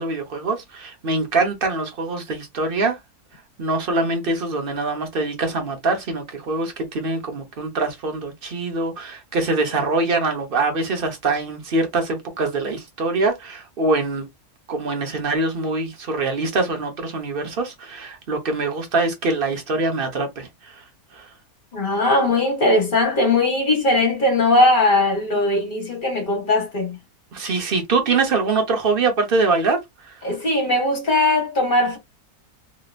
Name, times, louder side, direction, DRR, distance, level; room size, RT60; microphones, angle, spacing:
voice 1, 0.0-3.0 3.6-14.3 14.7-20.8 21.1-21.3 27.3-30.2, right 3 dB, 40° right, 1.0 m, -24 dB
voice 2, 21.7-27.0 30.2-32.0, left 2 dB, 35° left, 1.3 m, -19 dB
3.1 x 2.8 x 2.4 m
omnidirectional pair, 1.6 m